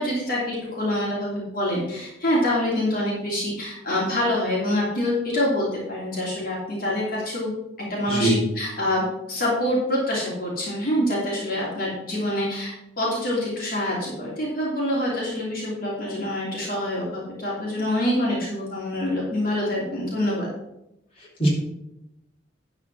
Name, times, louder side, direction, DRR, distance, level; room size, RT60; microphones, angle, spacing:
voice 1, 0.0-7.5 7.8-20.5, left 1 dB, 55° left, -5 dB, 3.1 m, -26 dB
voice 2, 8.1-8.4 21.2-21.5, right 2 dB, 35° left, -5 dB, 3.5 m, -22 dB
11.0 x 4.9 x 6.2 m, 0.88 s
head